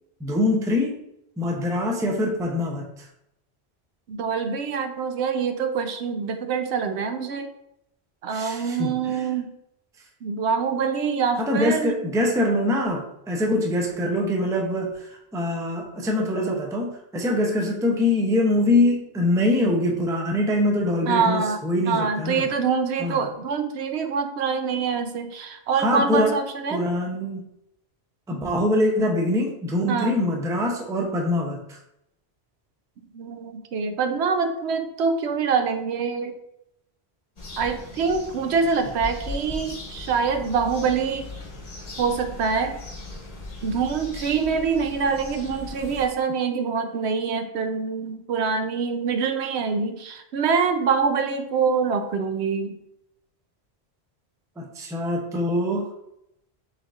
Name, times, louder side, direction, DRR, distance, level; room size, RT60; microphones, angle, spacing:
voice 1, 0.2-1.0 1.4-3.1 8.3-9.2 11.4-22.4 23.0-23.2 25.8-26.3 26.7-27.4 28.3-31.8 54.6-55.9, left 1 dB, 5° right, 1 dB, 0.4 m, -24 dB
voice 2, 4.1-7.5 8.2-9.5 10.2-12.0 21.1-21.6 21.9-26.8 29.9-30.2 33.1-36.3 37.6-41.3 42.0-42.8 43.6-52.7, right 5 dB, 80° right, 7 dB, 0.9 m, -25 dB
sound 1, 37.4-46.1, left 2 dB, 40° left, 0.9 m, -38 dB
6.4 x 3.2 x 2.4 m, 0.81 s
omnidirectional pair, 1.1 m